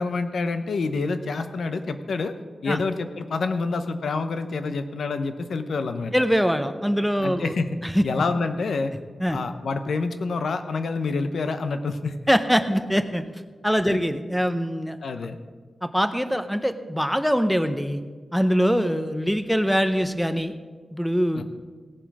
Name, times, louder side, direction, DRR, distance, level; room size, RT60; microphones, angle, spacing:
voice 1, 0.0-2.3 2.6-6.1 7.2-7.8 8.0-8.9 9.3-12.2 13.9-14.0 15.0-15.4 21.3-21.4, left 4 dB, 85° left, 8 dB, 0.8 m, -27 dB
voice 2, 6.1-7.6 7.9-8.0 9.2-9.4 12.3-13.2 13.6-15.0 15.8-18.0 18.3-20.5 20.9-21.4, equal, ahead, 10 dB, 0.6 m, -23 dB
17.5 x 7.5 x 4.8 m, 1.5 s
wide cardioid pair, 175°, 0 cm